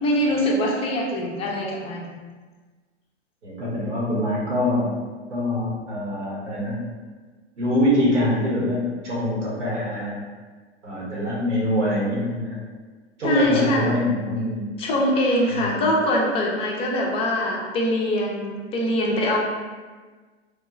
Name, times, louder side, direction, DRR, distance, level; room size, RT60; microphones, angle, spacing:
voice 1, 0.0-2.1 13.2-14.0 14.8-19.4, left 1 dB, 15° left, -1 dB, 0.4 m, -23 dB
voice 2, 3.4-4.9 5.3-6.8 7.6-10.2 10.8-12.6 13.2-14.7 15.5-15.9, left 1 dB, 85° right, -5 dB, 1.3 m, -24 dB
3.2 x 2.2 x 2.9 m, 1.4 s
hypercardioid pair, 110°, 34 cm